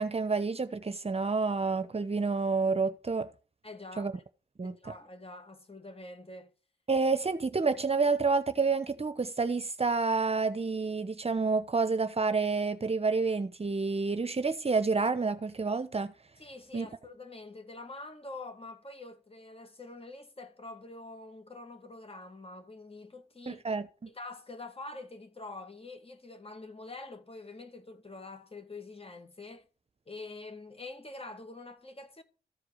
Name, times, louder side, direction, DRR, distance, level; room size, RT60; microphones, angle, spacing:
voice 1, 0.0-3.3 4.0-4.1 4.6-4.7 6.9-16.1 16.7-16.9 23.5-24.1, right 4 dB, 35° right, 0.9 m, -29 dB
voice 2, 3.6-4.2 4.6-6.5 16.4-23.6 24.1-29.7 30.1-32.2, left 2 dB, 30° left, 2.3 m, -46 dB
14.0 x 4.8 x 6.4 m
supercardioid pair, 50°, 18 cm